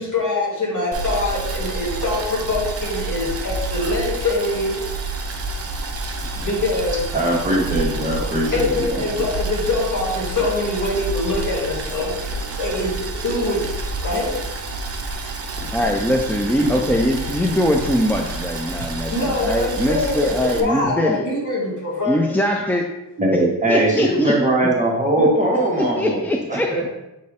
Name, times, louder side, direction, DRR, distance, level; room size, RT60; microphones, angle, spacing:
voice 1, 0.0-4.8 6.4-7.0 8.5-13.7 14.0-14.4 19.1-20.3 20.6-22.2, left 2 dB, 50° left, -4 dB, 2.3 m, -24 dB
Boiling, 0.9-20.6, right 2 dB, 40° right, 0.8 m, -29 dB
voice 2, 7.1-9.0 23.2-26.6, right 1 dB, 20° right, -4 dB, 1.5 m, -20 dB
voice 3, 15.7-21.2 22.1-22.8 23.7-24.4 25.2-25.3 25.8-26.9, equal, 5° left, 1 dB, 0.3 m, -21 dB
7.5 x 4.2 x 3.6 m, 0.96 s
wide cardioid pair, 150°, 38 cm